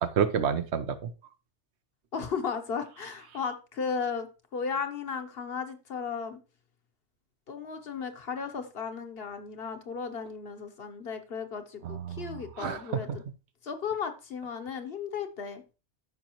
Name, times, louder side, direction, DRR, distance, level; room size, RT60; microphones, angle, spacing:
voice 1, 0.0-1.1 11.8-13.2, right 7 dB, 75° right, 1.0 m, -30 dB
voice 2, 2.1-4.3 4.5-6.4 7.5-13.1 13.6-15.6, left 6 dB, 60° left, 1.1 m, -35 dB
13.0 x 5.2 x 3.0 m
omnidirectional pair, 1.2 m